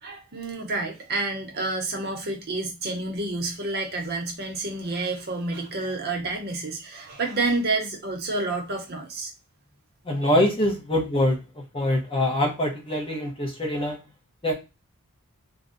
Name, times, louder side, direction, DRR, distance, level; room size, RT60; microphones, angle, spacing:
voice 1, 0.0-9.3 10.2-10.3, right 2 dB, 45° right, 2 dB, 0.8 m, -29 dB
voice 2, 10.0-14.0 14.4-14.5, left 1 dB, 25° left, 0 dB, 0.8 m, -24 dB
2.5 x 2.2 x 3.8 m, 0.28 s
head